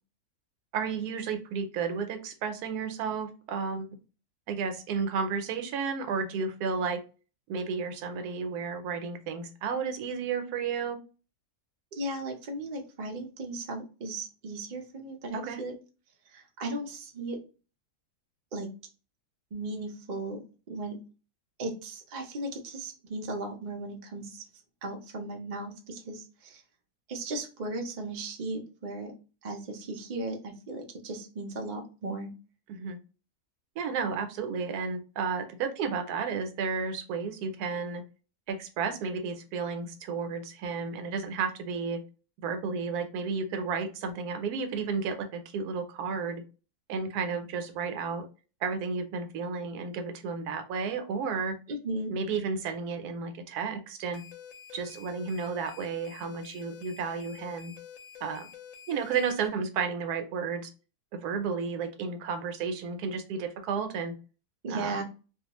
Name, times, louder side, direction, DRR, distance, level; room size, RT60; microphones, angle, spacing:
voice 1, 0.7-4.0 4.5-7.0 7.5-11.0 15.3-15.6 32.7-33.0 33.8-38.0 38.5-42.0 42.4-46.4 46.9-48.3 48.6-51.6 52.1-54.2 54.7-57.7 58.2-58.5 58.9-60.7 61.1-64.1 64.7-65.0, right 5 dB, 85° right, 7 dB, 1.1 m, -32 dB
voice 2, 11.9-15.7 16.3-17.4 18.5-18.7 19.5-20.4 20.7-21.0 21.6-24.4 24.8-26.6 27.1-29.1 29.4-32.3 51.7-52.1 64.6-65.0, right 2 dB, 60° right, 2 dB, 0.4 m, -36 dB
sound 1, 54.1-59.5, left 8 dB, 70° left, 0.9 m, -48 dB
2.4 x 2.3 x 2.9 m, 0.34 s
omnidirectional pair, 1.6 m